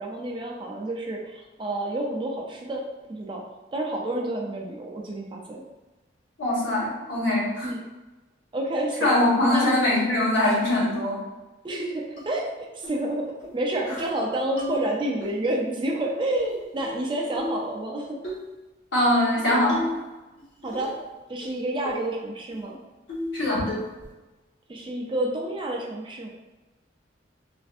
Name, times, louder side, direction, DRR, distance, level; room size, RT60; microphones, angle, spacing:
voice 1, 0.0-2.8 3.1-3.4 3.7-5.6 7.6-7.8 8.5-9.1 9.5-9.7 11.6-18.2 20.6-20.9 21.3-22.8 24.7-26.3, right 1 dB, 25° right, -1 dB, 0.4 m, -29 dB
voice 2, 6.4-7.7 9.0-11.2 18.9-19.8 23.3-23.6, left 1 dB, 80° left, -7 dB, 1.2 m, -22 dB
sound 1, 12.2-12.3 12.8-13.0 13.4-13.5 13.8-14.2 14.6-15.3 16.3-17.0 17.3-17.7 18.2-18.4 19.5-20.1 20.4-21.1 21.4-21.5 21.8-22.1 22.5-22.6 23.1-23.4 23.7-24.1, left 1 dB, 60° left, 1.0 m, -34 dB
3.2 x 2.5 x 2.4 m, 1.1 s
head